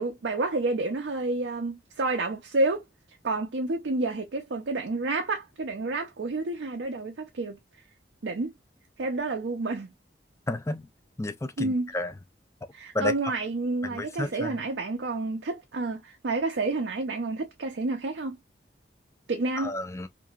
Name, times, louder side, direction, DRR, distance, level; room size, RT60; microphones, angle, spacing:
voice 1, 0.0-2.8 3.2-7.6 8.2-8.5 9.0-9.9 11.6-11.9 12.7-18.4 19.3-19.7, right 2 dB, 75° right, 0.5 m, -29 dB
voice 2, 10.5-10.9 11.2-12.1 12.9-13.1 13.9-14.6 19.6-20.1, left 2 dB, 15° left, 0.4 m, -31 dB
2.9 x 2.6 x 2.2 m
head